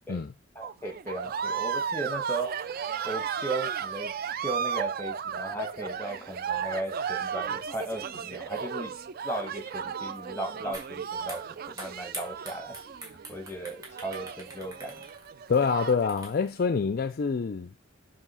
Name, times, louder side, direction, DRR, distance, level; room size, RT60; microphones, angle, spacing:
voice 1, 0.5-4.1 4.4-8.9 9.2-11.4 11.7-12.7 13.3-15.0, right 2 dB, 10° left, 1.3 m, -36 dB
sound 1, 0.6-16.1, right 7 dB, 45° right, 0.3 m, -35 dB
sound 2, 10.7-10.9 11.2-16.6, right 2 dB, 15° right, 1.8 m, -44 dB
voice 2, 15.5-17.7, left 5 dB, 45° left, 0.4 m, -26 dB
7.2 x 2.9 x 5.6 m
head